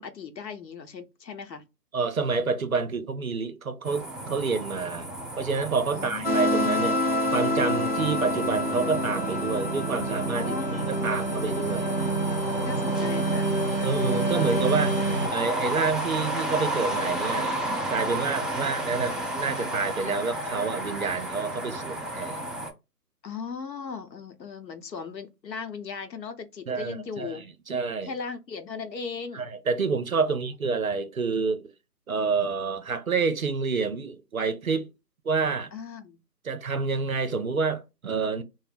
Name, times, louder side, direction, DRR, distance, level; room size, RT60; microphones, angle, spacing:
voice 1, 0.0-1.7 5.9-6.4 10.3-11.3 11.7-12.0 12.6-13.9 23.2-27.4 28.0-29.5 30.3-30.4 35.7-36.2, left 5 dB, 85° left, 0.8 m, -38 dB
voice 2, 1.9-5.1 5.4-7.0 7.3-11.9 13.8-15.0 15.3-17.6 17.9-22.4 26.7-28.1 29.3-31.7 32.1-34.9 35.3-35.7 36.5-38.4, right 4 dB, 60° right, 0.5 m, -28 dB
sound 1, 3.8-22.7, right 1 dB, ahead, 0.4 m, -33 dB
sound 2, 6.2-15.3, right 1 dB, 35° left, 0.7 m, -27 dB
2.5 x 2.0 x 3.3 m
hypercardioid pair, 175°, 49 cm